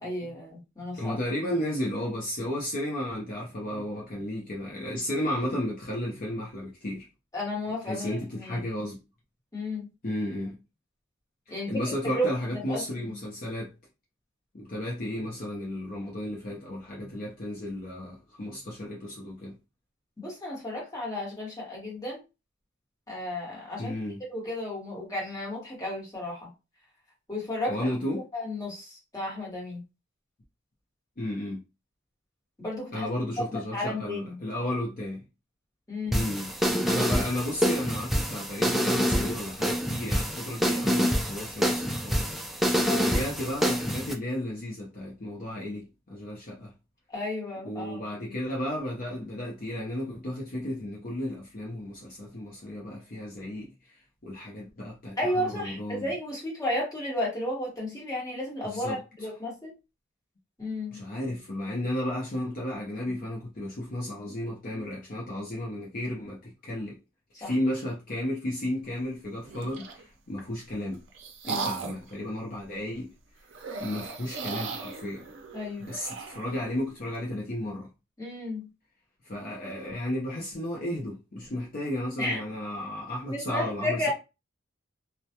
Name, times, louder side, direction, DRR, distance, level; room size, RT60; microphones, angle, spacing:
voice 1, 0.0-1.2 7.3-8.6 9.5-9.9 11.5-11.7 12.1-12.3 12.7-13.1 20.2-22.2 23.1-23.9 24.3-26.5 27.3-27.8 28.3-29.8 32.6-33.1 33.5-34.4 35.9-36.2 42.8-43.1 47.1-48.0 48.2-48.3 55.2-59.7 60.6-61.0 67.4-67.5 71.4-71.7 75.5-75.9 78.2-78.7 82.2-82.4 83.3-84.1, left 1 dB, 15° left, 1.1 m, -33 dB
voice 2, 0.9-7.1 7.8-9.0 10.0-10.6 11.5-13.7 14.5-19.6 23.8-24.2 27.7-28.2 31.2-31.6 32.9-35.2 36.1-36.5 36.8-42.4 43.0-46.7 47.6-54.0 54.2-56.1 58.6-59.0 60.9-67.0 67.4-71.0 71.5-73.1 73.8-75.3 75.8-77.9 79.2-84.1, left 1 dB, 45° left, 0.6 m, -33 dB
sound 1, 36.1-44.1, equal, ahead, 0.3 m, -27 dB
sound 2, 69.4-70.0 70.7-72.1 73.5-76.6, right 5 dB, 65° right, 0.5 m, -37 dB
2.2 x 2.1 x 2.8 m
head